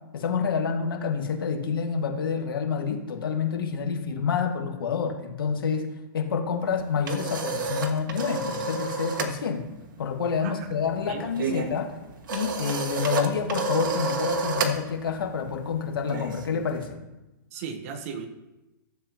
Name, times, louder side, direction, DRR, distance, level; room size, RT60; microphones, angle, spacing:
voice 1, 0.1-9.7 10.0-11.9 12.3-17.0, left 6 dB, 85° left, 3 dB, 1.8 m, -28 dB
sound 1, 6.7-9.4 9.6-9.9 10.2-16.9, right 3 dB, 65° right, 1.4 m, -31 dB
voice 2, 11.1-11.5 17.5-18.3, right 6 dB, 40° right, 6 dB, 1.1 m, -36 dB
14.0 x 7.7 x 3.0 m, 1.0 s
hypercardioid pair, 160°, 12 cm